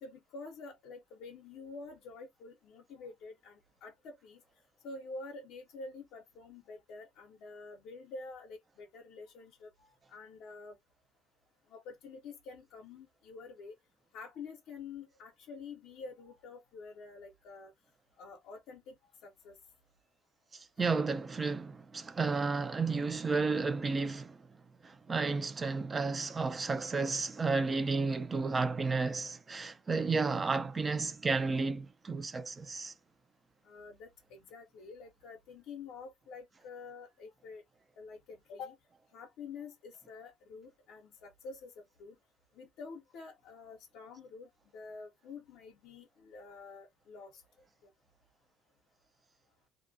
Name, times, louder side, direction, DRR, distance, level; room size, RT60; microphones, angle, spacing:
voice 1, 0.0-4.4 4.8-10.8 11.7-13.7 14.1-17.7 18.2-19.0 19.2-19.6 33.6-37.6 38.0-38.8 39.1-41.7 42.0-42.2 42.5-47.4 47.8-47.9, left 4 dB, 75° left, 0.5 m, -48 dB
voice 2, 20.5-24.4 24.8-32.9, right 4 dB, 30° right, 0.4 m, -32 dB
2.4 x 2.0 x 2.6 m
cardioid pair, 95°, 0 cm